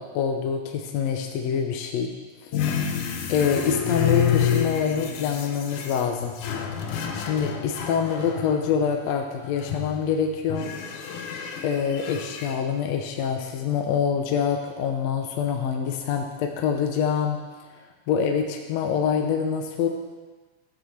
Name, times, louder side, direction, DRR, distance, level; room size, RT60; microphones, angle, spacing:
voice 1, 0.0-2.1 2.4-2.5 3.3-6.3 7.1-10.7 11.6-17.4 18.1-19.9, left 7 dB, 70° left, 3 dB, 1.9 m, -25 dB
sound 1, 2.5-8.9 9.4-10.1 10.5-12.5, left 8 dB, 90° left, 2.4 m, -28 dB
14.0 x 6.2 x 6.4 m, 1.3 s
omnidirectional pair, 3.4 m